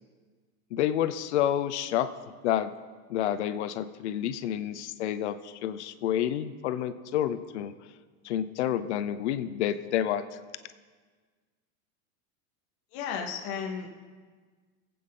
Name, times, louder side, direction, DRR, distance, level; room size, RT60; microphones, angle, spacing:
voice 1, 0.7-2.1 2.4-2.7 3.1-7.7 8.2-10.2, left 11 dB, 55° left, 12 dB, 0.6 m, -29 dB
voice 2, 12.9-13.9, left 7 dB, 15° left, 1 dB, 0.4 m, -34 dB
25.0 x 8.6 x 3.7 m, 1.5 s
supercardioid pair, 180°, 42 cm